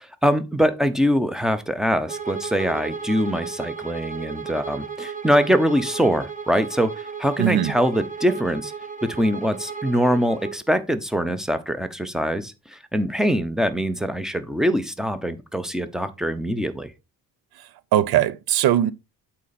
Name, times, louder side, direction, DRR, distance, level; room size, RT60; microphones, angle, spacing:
voice 1, 0.0-8.7 9.0-16.9, equal, ahead, 0.8 m, -23 dB
Bowed string instrument, 2.1-10.6, right 6 dB, 20° right, 1.3 m, -34 dB
voice 2, 7.4-7.7 17.9-18.9, right 11 dB, 85° right, 0.7 m, -19 dB
8.2 x 4.2 x 4.1 m
cardioid pair, 125°, 36 cm